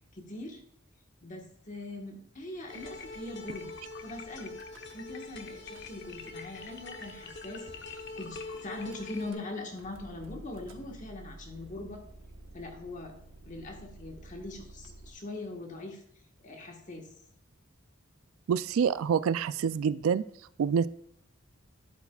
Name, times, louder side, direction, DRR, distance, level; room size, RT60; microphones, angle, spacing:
voice 1, 0.1-0.6 1.2-3.8 4.0-4.5 4.9-12.0 12.5-13.2 13.4-16.0 16.4-17.1, left 2 dB, 40° left, 2 dB, 1.4 m, -42 dB
sound 1, 2.7-9.3, left 3 dB, 55° left, 0.9 m, -43 dB
Car / Engine starting / Idling, 4.5-5.3 5.6-6.3 7.0-7.1 7.3-7.4 7.7-8.0 8.9-15.1, right 1 dB, 65° right, 1.1 m, -51 dB
voice 2, 18.5-20.2 20.6-20.9, right 7 dB, 90° right, 15 dB, 0.3 m, -26 dB
12.0 x 8.2 x 2.3 m, 0.68 s
head